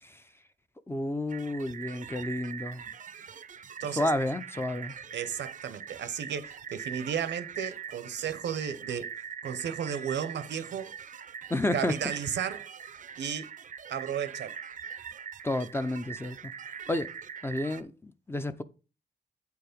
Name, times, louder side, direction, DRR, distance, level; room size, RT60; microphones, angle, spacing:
voice 1, 0.9-2.8 4.0-4.9 11.5-12.0 15.4-16.5 16.9-17.1 17.4-18.6, left 1 dB, 15° left, 0.4 m, -31 dB
sound 1, 1.3-17.8, right 7 dB, 45° right, 0.5 m, -42 dB
voice 2, 5.1-9.1 9.4-10.9 11.7-12.7 13.2-13.5 13.9-14.6, right 8 dB, 80° right, 0.7 m, -34 dB
8.4 x 4.7 x 5.0 m
wide cardioid pair, 145°, 18 cm